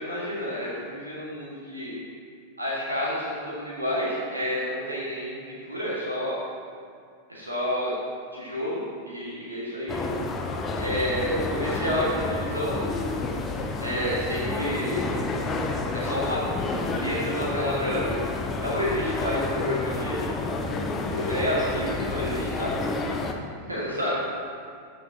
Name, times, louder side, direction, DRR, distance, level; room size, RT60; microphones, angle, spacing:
voice 1, 0.0-2.0 2.6-6.4 7.3-8.0 8.3-10.0 10.8-12.9 13.8-15.0 15.9-16.4 16.9-18.2 18.6-20.3 21.1-22.7 23.7-24.2, equal, 80° right, -7 dB, 1.7 m, -29 dB
sound 1, 9.9-23.3, left 3 dB, 25° left, 0.7 m, -30 dB
8.8 x 6.9 x 2.9 m, 2.3 s
figure-of-eight pair, 90°, 0 cm